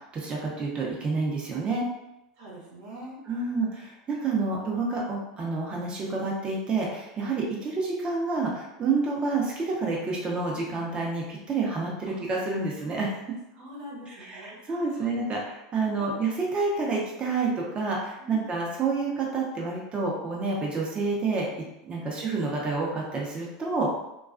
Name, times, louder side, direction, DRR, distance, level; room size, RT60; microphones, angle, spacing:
voice 1, 0.1-1.8 3.3-13.2 14.3-21.5 21.8-23.9, right 3 dB, 25° right, -2 dB, 0.7 m, -28 dB
voice 2, 2.4-3.2 12.0-12.2 13.5-15.1 16.0-16.3 18.2-18.5, equal, 55° right, -5 dB, 0.9 m, -45 dB
2.3 x 2.2 x 2.4 m, 0.93 s
hypercardioid pair, 110°, 4 cm